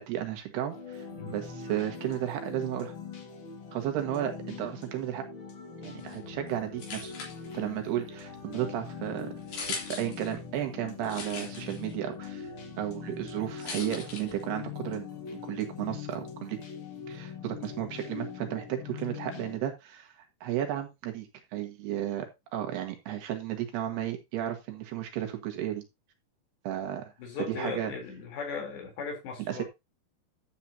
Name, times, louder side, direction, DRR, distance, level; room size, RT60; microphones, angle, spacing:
voice 1, 0.0-2.9 3.7-5.3 5.8-7.1 7.5-12.5 12.8-16.6 17.1-20.1 20.4-25.8 26.6-27.1 27.5-27.9 29.4-29.6, right 11 dB, 75° right, 3.7 m, -34 dB
sound 1, 0.7-19.6, left 6 dB, 45° left, 1.8 m, -42 dB
sound 2, 6.0-14.8, left 4 dB, 70° left, 5.3 m, -43 dB
voice 2, 27.2-29.6, left 5 dB, 85° left, 5.9 m, -37 dB
12.0 x 8.0 x 2.8 m
omnidirectional pair, 4.8 m